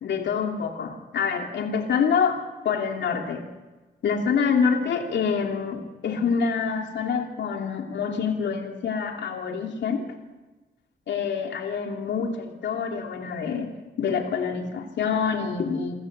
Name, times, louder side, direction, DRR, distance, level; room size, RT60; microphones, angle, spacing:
voice 1, 0.0-3.5 4.0-10.0 11.1-16.0, left 6 dB, 80° left, 3 dB, 2.7 m, -26 dB
28.5 x 15.5 x 6.7 m, 1.2 s
supercardioid pair, 50°, 18 cm